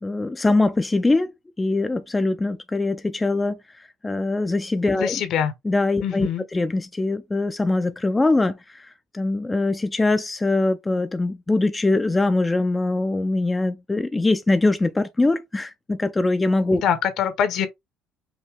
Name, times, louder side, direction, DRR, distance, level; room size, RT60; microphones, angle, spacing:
voice 1, 0.0-1.3 1.6-5.2 5.6-16.8, left 2 dB, 15° left, 0.4 m, -22 dB
voice 2, 4.9-5.5 6.0-6.4 16.7-17.7, left 8 dB, 60° left, 1.0 m, -24 dB
5.3 x 2.8 x 3.3 m
cardioid pair, 130°, 0 cm